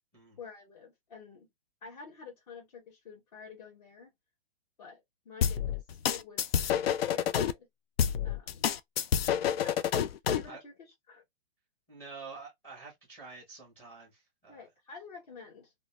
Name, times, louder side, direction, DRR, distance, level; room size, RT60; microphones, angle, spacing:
voice 1, 0.4-1.5 1.8-4.1 4.8-6.5 7.1-7.7 8.2-8.6 9.5-9.8 10.2-11.2 14.5-15.7, left 5 dB, 45° left, 1.0 m, -49 dB
sound 1, 5.4-7.5 8.0-10.5, left 9 dB, 90° left, 0.5 m, -28 dB
voice 2, 11.9-14.6, right 4 dB, 5° left, 0.6 m, -48 dB
2.2 x 2.1 x 3.0 m
hypercardioid pair, 165°, 29 cm